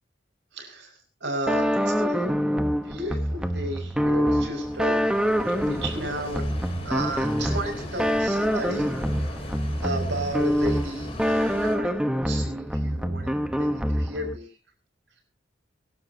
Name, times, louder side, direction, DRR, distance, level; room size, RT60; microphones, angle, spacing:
voice 1, 0.5-2.3 2.8-5.2 5.6-6.5 6.8-8.9 9.8-11.9 12.2-14.5, right 1 dB, 70° right, 3 dB, 5.8 m, -33 dB
sound 1, 1.5-14.4, equal, 5° right, 1.1 m, -26 dB
sound 2, 4.1-11.8, left 1 dB, 35° left, 3.6 m, -40 dB
25.5 x 12.0 x 2.9 m, 0.31 s
head